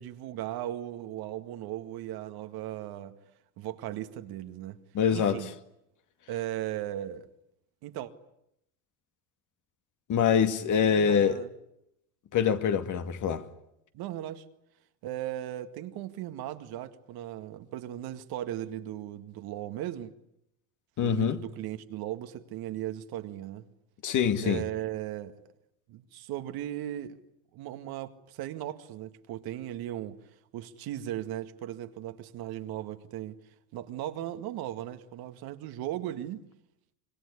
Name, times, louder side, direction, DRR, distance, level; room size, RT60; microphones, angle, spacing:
voice 1, 0.0-3.2 3.6-4.8 5.1-5.5 6.3-7.3 7.8-8.1 10.9-11.5 13.9-14.4 15.0-20.1 21.0-23.7 24.4-25.3 25.9-27.2 27.5-30.2 30.5-33.4 33.7-36.4, right 12 dB, 60° right, 2.0 m, -37 dB
voice 2, 4.9-5.4 10.1-11.4 12.3-13.4 21.0-21.4 24.0-24.6, left 7 dB, 45° left, 2.2 m, -25 dB
25.5 x 22.0 x 9.8 m
supercardioid pair, 90°, 40 cm